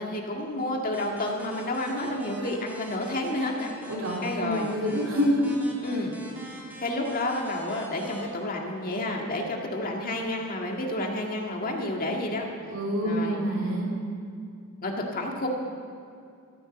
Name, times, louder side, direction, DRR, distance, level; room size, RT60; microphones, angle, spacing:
voice 1, 0.0-3.7 4.2-4.7 5.8-6.1 6.8-12.5 13.0-13.4 14.8-15.5, left 1 dB, 40° left, 1 dB, 1.9 m, -30 dB
sound 1, 0.9-8.2, right 1 dB, 10° right, 2.7 m, -44 dB
voice 2, 3.9-5.5 12.7-13.9, equal, 70° right, -3 dB, 3.7 m, -27 dB
13.5 x 12.0 x 6.9 m, 2.4 s
head